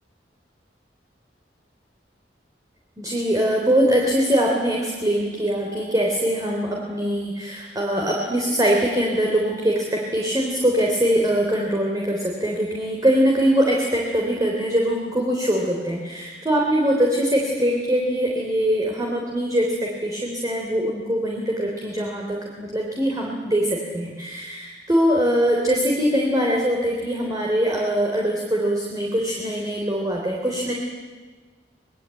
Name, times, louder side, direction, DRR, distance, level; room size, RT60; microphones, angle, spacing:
voice 1, 3.0-30.7, equal, 20° right, -1 dB, 3.4 m, -22 dB
24.5 x 20.5 x 9.2 m, 1.3 s
head